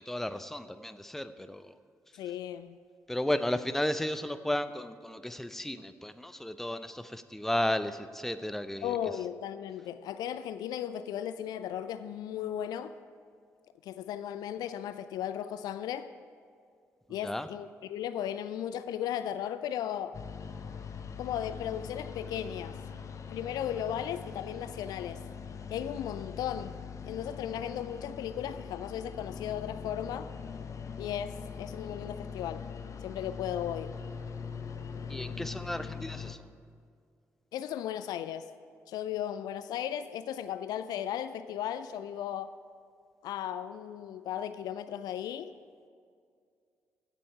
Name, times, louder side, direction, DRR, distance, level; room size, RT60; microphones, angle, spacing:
voice 1, 0.0-1.6 3.1-6.9 7.3-7.9 8.2-8.9 17.3-17.4 35.1-36.4, left 1 dB, 5° left, 0.6 m, -33 dB
voice 2, 2.1-2.8 8.8-12.9 13.8-16.1 17.1-20.2 21.2-22.8 23.3-25.2 25.7-26.8 27.0-30.3 31.0-32.7 33.0-33.9 37.5-38.5 38.9-42.6 43.2-45.5, left 10 dB, 60° left, 0.4 m, -36 dB
sound 1, 20.1-36.3, left 6 dB, 40° left, 0.8 m, -42 dB
16.0 x 6.9 x 4.7 m
figure-of-eight pair, 40°, 8 cm